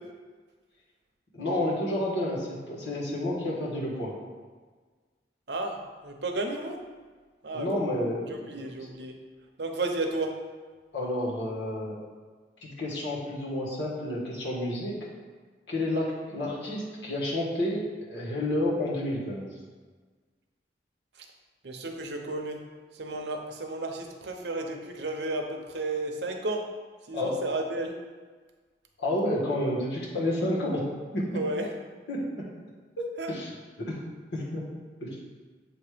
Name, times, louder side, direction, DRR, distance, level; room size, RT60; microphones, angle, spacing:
voice 1, 1.3-4.1 7.5-8.5 10.9-11.9 12.6-14.9 15.7-17.8 18.1-19.5 27.1-27.3 29.0-30.8 31.1-31.4 32.1-32.2 33.0-33.5 33.8-33.9 34.3-34.6 35.0-35.2, left 1 dB, 80° left, -5 dB, 1.8 m, -30 dB
voice 2, 5.5-6.8 7.4-7.8 8.3-9.1 9.6-10.3 21.6-22.6 22.9-26.6 27.1-27.9 31.3-31.7 33.2-33.3, right 2 dB, 70° right, 3 dB, 0.7 m, -32 dB
7.5 x 2.9 x 5.0 m, 1.4 s
head